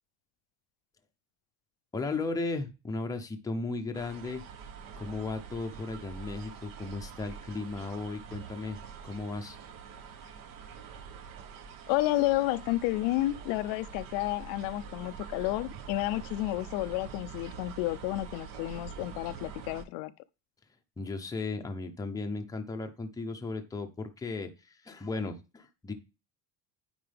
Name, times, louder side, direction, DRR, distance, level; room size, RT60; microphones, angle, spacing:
voice 1, 1.9-4.4 5.0-8.8 9.0-9.6 21.0-25.9, left 3 dB, 10° left, 0.7 m, -35 dB
sound 1, 3.9-19.8, right 6 dB, 50° right, 1.0 m, -45 dB
voice 2, 11.9-20.1, left 17 dB, 85° left, 0.6 m, -31 dB
9.4 x 4.4 x 3.4 m
cardioid pair, 150°, 41 cm